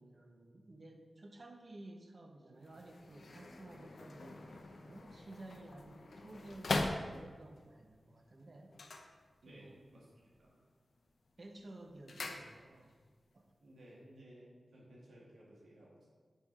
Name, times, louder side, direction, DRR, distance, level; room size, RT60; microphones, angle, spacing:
voice 1, 0.0-8.7 9.5-9.8 11.4-12.9 13.3-13.4, right 2 dB, 50° right, 3 dB, 1.0 m, -54 dB
sound 1, 2.6-7.6 8.6-9.8 10.1-10.6 10.9-13.0 13.3-13.4, left 2 dB, 75° left, 0.7 m, -42 dB
voice 2, 9.4-10.6 13.6-16.1, right 1 dB, 90° right, -4 dB, 1.6 m, -58 dB
6.5 x 4.7 x 5.3 m, 1.5 s
cardioid pair, 60°, 0 cm